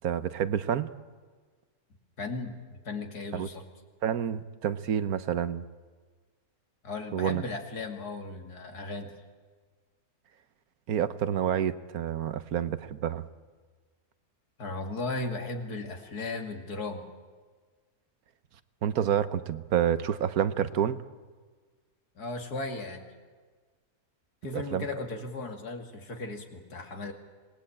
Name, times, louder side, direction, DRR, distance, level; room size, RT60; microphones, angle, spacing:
voice 1, 0.0-0.9 3.3-3.5 4.0-5.6 7.1-7.4 10.9-13.3 18.8-21.0 24.5-24.9, right 9 dB, 75° right, 14 dB, 1.4 m, -28 dB
voice 2, 2.2-3.7 6.8-9.2 14.6-17.1 22.2-23.1 24.4-27.1, left 3 dB, 85° left, 5 dB, 2.8 m, -36 dB
26.0 x 19.0 x 8.7 m, 1.5 s
omnidirectional pair, 1.6 m